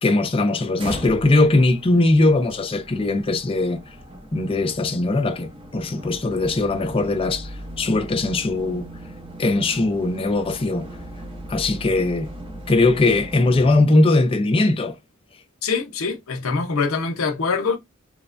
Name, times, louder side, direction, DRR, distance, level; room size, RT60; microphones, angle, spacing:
voice 1, 0.0-3.8 4.3-8.9 9.4-10.9 11.5-12.3 12.7-15.0, left 2 dB, 25° left, 0.4 m, -20 dB
sound 1, 0.7-13.7, right 1 dB, 25° right, 0.7 m, -38 dB
voice 2, 15.6-17.8, left 4 dB, 70° left, 0.6 m, -24 dB
3.1 x 2.1 x 2.4 m
head